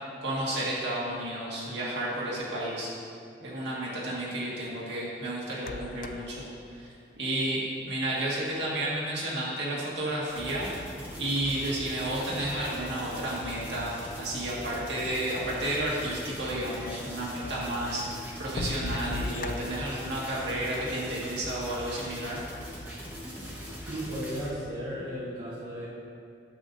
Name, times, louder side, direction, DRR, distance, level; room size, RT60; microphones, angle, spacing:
voice 1, 0.2-2.9 3.4-6.9 7.2-10.7 11.2-22.4, right 1 dB, 75° right, -6 dB, 1.8 m, -32 dB
sound 1, 5.6-7.9 8.9-9.0 9.6-10.8 11.4-12.2 13.0-13.1 13.3-13.4 14.0-14.1 14.4-15.2 16.8-16.9 17.5-17.6 18.2-20.1, left 3 dB, 45° left, 0.3 m, -38 dB
sound 2, 10.3-24.5, equal, 10° right, 1.1 m, -41 dB
voice 2, 23.9-25.9, equal, 45° right, -8 dB, 1.1 m, -35 dB
9.0 x 7.7 x 2.6 m, 2.3 s
head